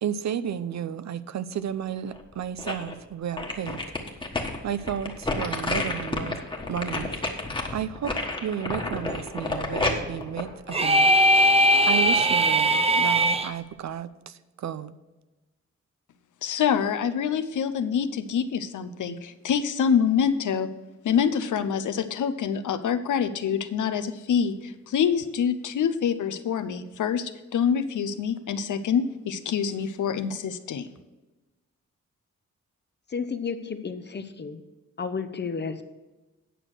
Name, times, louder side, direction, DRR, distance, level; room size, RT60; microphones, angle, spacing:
voice 1, 0.0-3.8 4.6-6.4 6.7-7.2 7.7-11.1 11.8-15.0, right 9 dB, 65° right, 14 dB, 0.5 m, -32 dB
sound 1, 2.1-2.9 3.4-11.4 11.9-12.0, left 2 dB, 15° left, 1.3 m, -30 dB
sound 2, 10.7-13.5, equal, 20° right, 0.6 m, -19 dB
voice 2, 16.4-20.7 21.0-30.9, left 7 dB, 90° left, 11 dB, 0.7 m, -26 dB
voice 3, 33.1-34.6 35.0-35.8, left 5 dB, 35° left, 10 dB, 0.8 m, -32 dB
9.3 x 6.3 x 6.1 m, 1.1 s
wide cardioid pair, 115°, 30 cm